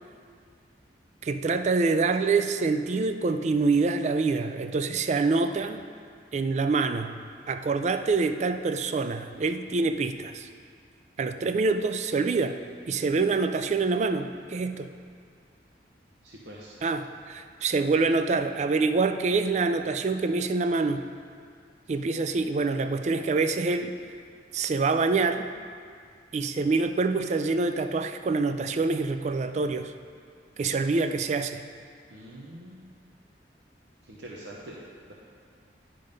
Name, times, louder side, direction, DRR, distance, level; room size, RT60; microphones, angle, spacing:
voice 1, 1.2-5.9 6.3-7.2 7.5-10.5 11.2-12.6 12.9-14.9 16.8-21.0 21.9-24.0 24.5-25.5 26.3-29.9 30.6-31.6, right 3 dB, 40° right, 9 dB, 0.3 m, -26 dB
voice 2, 16.2-16.8 32.1-32.9 34.0-35.1, right 1 dB, 80° right, -4 dB, 0.8 m, -44 dB
10.5 x 3.8 x 5.2 m, 2.1 s
head